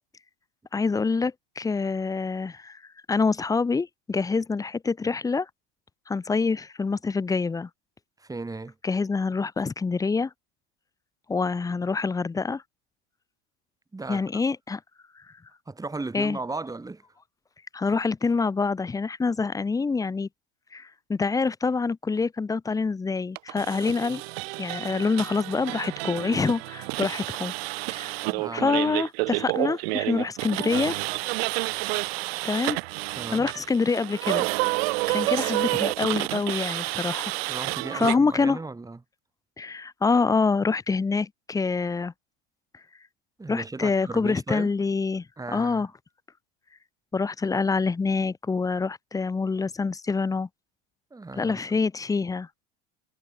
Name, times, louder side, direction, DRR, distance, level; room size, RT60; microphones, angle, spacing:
voice 1, 0.7-2.8 3.1-5.5 6.1-7.7 8.8-10.3 11.3-12.6 14.1-14.8 16.1-16.4 17.7-20.3 20.7-24.2 24.6-27.5 27.9-28.2 28.5-31.0 32.4-32.8 33.3-34.5 35.1-37.3 37.9-38.6 39.6-42.1 43.5-45.2 45.5-45.9 47.1-50.5 51.4-52.5, left 4 dB, 10° left, 0.6 m, -26 dB
voice 2, 8.2-8.7 13.9-14.2 15.7-17.0 24.1-24.2 28.2-28.7 33.1-33.5 37.5-39.0 43.4-44.7 45.4-45.9 51.1-51.6, right 3 dB, 10° right, 3.1 m, -36 dB
sound 1, 23.4-38.1, right 25 dB, 80° right, 1.0 m, -29 dB
supercardioid pair, 110°, 30 cm